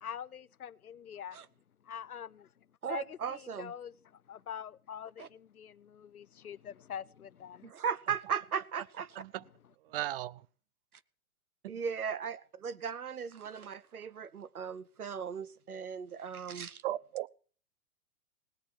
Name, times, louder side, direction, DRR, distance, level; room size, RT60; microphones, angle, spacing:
voice 1, 0.0-1.4 1.9-2.5 2.8-3.9 4.3-7.7, left 8 dB, 85° left, 0.7 m, -44 dB
voice 2, 2.8-3.7 5.2-5.3 7.6-9.2 11.7-16.8, right 7 dB, 85° right, 1.0 m, -37 dB
voice 3, 9.9-10.4 16.8-17.3, right 15 dB, 40° right, 0.6 m, -36 dB
18.5 x 7.2 x 8.3 m
figure-of-eight pair, 110°, 43 cm